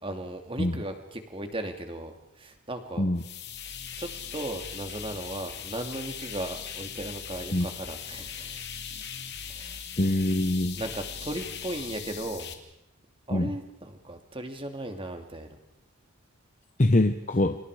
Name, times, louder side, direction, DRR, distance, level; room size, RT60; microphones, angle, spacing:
voice 1, 0.0-3.1 3.7-8.6 9.5-9.8 10.7-12.5 13.3-15.5, right 1 dB, 25° right, 5 dB, 2.6 m, -37 dB
sound 1, 3.2-12.5, left 7 dB, 50° left, 2.6 m, -39 dB
voice 2, 10.0-10.8 13.3-13.5 16.8-17.6, left 1 dB, 35° left, 7 dB, 0.9 m, -24 dB
30.0 x 26.0 x 5.0 m, 0.82 s
head